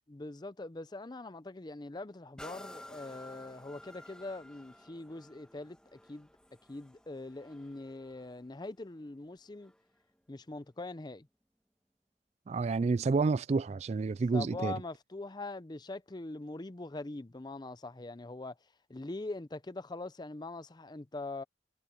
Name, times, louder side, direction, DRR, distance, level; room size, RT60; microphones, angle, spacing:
voice 1, 0.1-6.3 6.7-9.7 10.3-11.3 14.3-18.6 18.9-21.4, left 2 dB, 25° left, 0.6 m, -42 dB
sound 1, 2.4-10.0 10.6-10.7, left 1 dB, 5° left, 2.3 m, -54 dB
voice 2, 12.5-14.8, right 4 dB, 35° right, 0.3 m, -29 dB
head